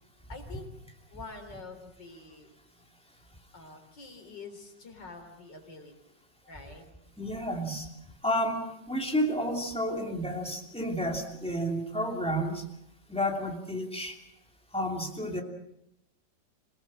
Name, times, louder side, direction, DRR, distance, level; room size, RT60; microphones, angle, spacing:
voice 1, 0.3-0.7 1.1-2.5 3.5-5.9 6.5-6.8, left 3 dB, 85° left, 4 dB, 4.2 m, -46 dB
voice 2, 7.2-7.9 8.2-12.6 13.1-14.2 14.7-15.4, equal, 5° left, 2 dB, 2.7 m, -31 dB
27.0 x 17.5 x 7.6 m, 0.83 s
omnidirectional pair, 1.9 m